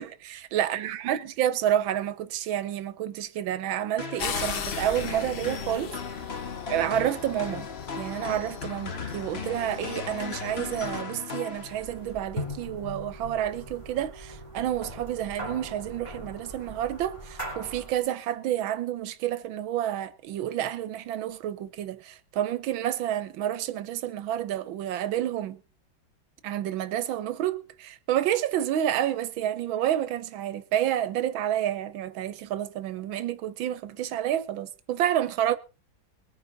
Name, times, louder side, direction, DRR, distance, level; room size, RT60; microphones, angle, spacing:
voice 1, 0.0-5.9 6.7-7.7 7.9-25.6 26.4-35.6, right 11 dB, 90° right, 1.6 m, -29 dB
sound 1, 4.0-12.1, left 4 dB, 35° left, 1.4 m, -38 dB
sound 2, 4.2-11.0, left 7 dB, 85° left, 0.5 m, -37 dB
sound 3, 11.5-18.0, equal, 15° left, 3.7 m, -40 dB
21.5 x 9.6 x 3.9 m
omnidirectional pair, 2.1 m